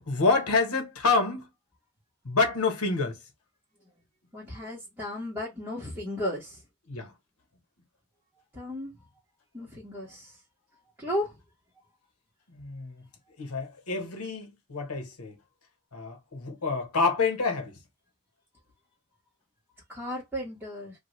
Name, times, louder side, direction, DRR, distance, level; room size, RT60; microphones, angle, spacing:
voice 1, 0.1-1.5 2.2-3.2 6.9-7.1 12.5-13.0 13.4-15.3 15.9-17.7, left 4 dB, 90° left, 1.2 m, -27 dB
voice 2, 4.3-6.6 8.5-8.9 9.5-10.3 11.0-11.3 19.9-20.9, left 1 dB, 10° right, 1.3 m, -34 dB
2.7 x 2.6 x 3.0 m
head